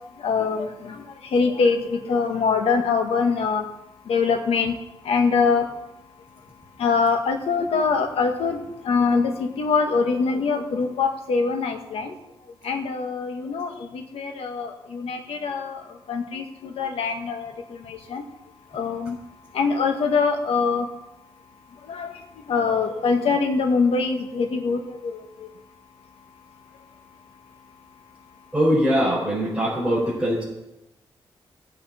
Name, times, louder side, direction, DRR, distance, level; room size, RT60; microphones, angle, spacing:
voice 1, 0.2-1.0 1.3-3.6 4.1-4.7 5.0-5.7 6.8-8.6 8.8-12.1 12.6-15.8 16.1-17.5 17.9-18.2 18.7-19.1 19.5-20.9 21.9-22.1 22.5-25.2, left 5 dB, 85° left, 4 dB, 1.7 m, -23 dB
voice 2, 28.5-30.4, equal, 5° right, -10 dB, 5.3 m, -22 dB
17.0 x 8.8 x 4.4 m, 0.90 s
cardioid pair, 110°, 10 cm